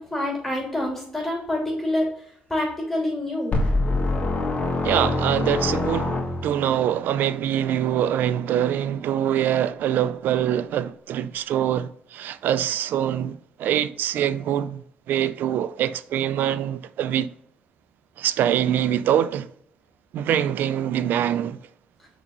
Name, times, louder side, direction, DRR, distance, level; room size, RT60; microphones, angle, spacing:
voice 1, 0.0-3.6 22.0-22.1, left 1 dB, 10° left, 3.0 m, -27 dB
sound 1, 3.5-6.8, left 2 dB, 40° left, 1.6 m, -24 dB
voice 2, 4.8-17.3 18.2-19.5 20.1-21.6, right 10 dB, 75° right, 0.4 m, -24 dB
6.2 x 5.2 x 3.9 m
supercardioid pair, 75°, 3 cm